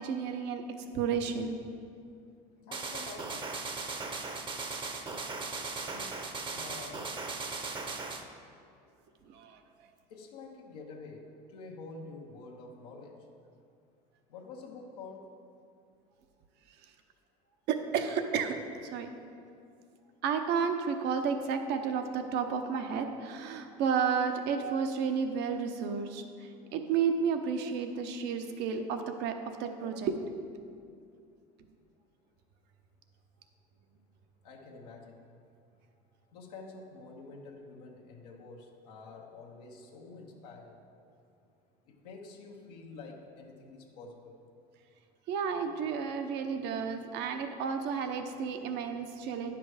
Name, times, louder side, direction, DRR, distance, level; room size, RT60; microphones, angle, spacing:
voice 1, 0.0-0.6 0.9-1.5 9.3-9.6 17.7-18.6 18.8-19.1 20.2-30.2 45.3-49.6, right 6 dB, 60° right, 6 dB, 0.9 m, -32 dB
voice 2, 2.6-3.5 5.9-7.0 10.1-13.3 14.3-15.3 34.4-35.2 36.3-40.8 41.9-44.4, left 3 dB, 85° left, -1 dB, 1.0 m, -48 dB
sound 1, 2.7-8.2, right 3 dB, 25° right, 0.8 m, -38 dB
9.8 x 5.9 x 4.9 m, 2.4 s
supercardioid pair, 95°, 19 cm